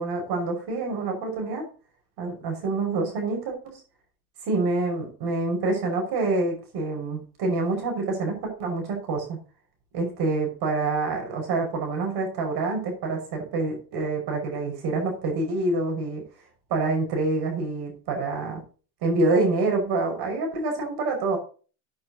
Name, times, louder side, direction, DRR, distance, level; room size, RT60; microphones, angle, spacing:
voice 1, 0.0-1.7 2.2-3.8 4.4-9.4 9.9-16.2 16.7-18.6 19.0-21.4, right 3 dB, 55° right, 2 dB, 5.8 m, -26 dB
15.0 x 8.8 x 2.9 m, 0.38 s
supercardioid pair, 100°, 47 cm